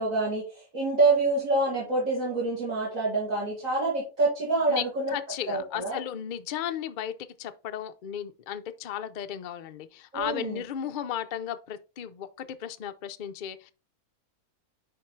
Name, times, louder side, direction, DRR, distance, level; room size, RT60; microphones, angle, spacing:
voice 1, 0.0-5.2 5.5-6.0 10.1-10.6, right 2 dB, 60° right, 2.7 m, -26 dB
voice 2, 5.1-13.7, left 9 dB, 70° left, 0.4 m, -35 dB
10.5 x 3.9 x 3.2 m
omnidirectional pair, 1.6 m